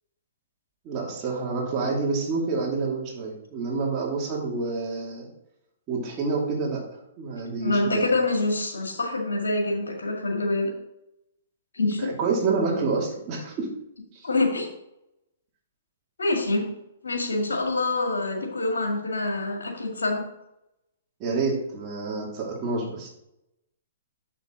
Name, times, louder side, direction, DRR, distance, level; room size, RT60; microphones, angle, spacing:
voice 1, 0.8-5.3 5.9-6.8 7.2-8.1 12.0-13.7 21.2-23.1, right 4 dB, 30° right, -2 dB, 2.6 m, -28 dB
voice 2, 7.6-10.7 11.7-12.1 14.2-14.7 16.2-16.7 17.0-20.2, left 2 dB, 90° left, 1 dB, 1.8 m, -25 dB
7.1 x 6.1 x 3.9 m, 0.84 s
hypercardioid pair, 135°, 0 cm